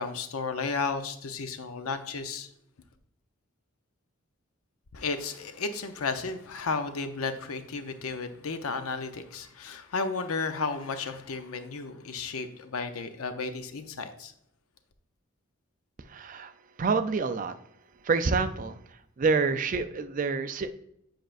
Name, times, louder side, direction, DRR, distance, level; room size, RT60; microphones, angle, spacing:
voice 1, 0.0-2.5 4.9-14.3, left 4 dB, 85° left, 9 dB, 0.6 m, -33 dB
voice 2, 16.1-16.5 16.8-17.5 18.0-18.8 19.2-20.7, right 4 dB, 40° right, 10 dB, 0.4 m, -27 dB
7.7 x 5.1 x 2.5 m, 0.75 s
head